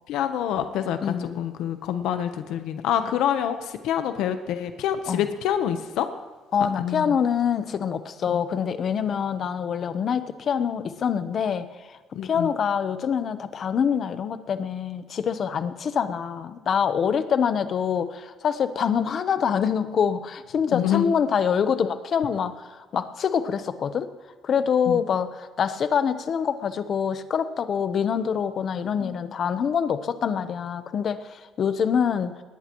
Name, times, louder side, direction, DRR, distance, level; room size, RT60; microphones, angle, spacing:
voice 1, 0.1-6.1 6.8-7.2 8.3-8.4 12.1-12.5 20.7-21.1 24.9-25.0 29.0-29.3, left 10 dB, 80° left, 8 dB, 0.9 m, -27 dB
voice 2, 1.0-1.4 5.1-5.2 6.5-24.1 24.4-32.3, left 7 dB, 40° left, 11 dB, 0.9 m, -25 dB
20.0 x 18.0 x 3.1 m, 1.3 s
cardioid pair, 160°, 0 cm